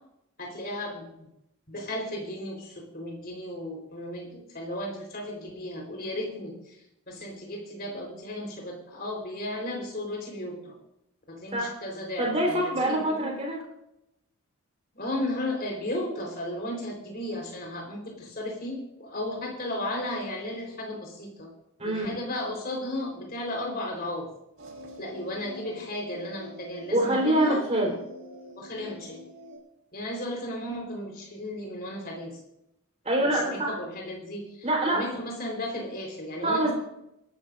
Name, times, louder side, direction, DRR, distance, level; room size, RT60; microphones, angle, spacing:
voice 1, 0.4-1.3 1.7-10.8 11.3-13.3 14.9-21.5 21.8-24.3 25.0-27.6 28.6-29.2 29.9-32.4 33.2-36.7, left 1 dB, 45° left, 0 dB, 4.0 m, -35 dB
voice 2, 12.2-13.6 21.8-22.2 26.9-27.9 33.0-33.8 34.6-35.0 36.4-36.7, right 1 dB, 30° right, -1 dB, 4.0 m, -25 dB
sound 1, 24.6-29.6, equal, 55° right, 5.1 m, -45 dB
27.0 x 12.5 x 2.6 m, 0.85 s
head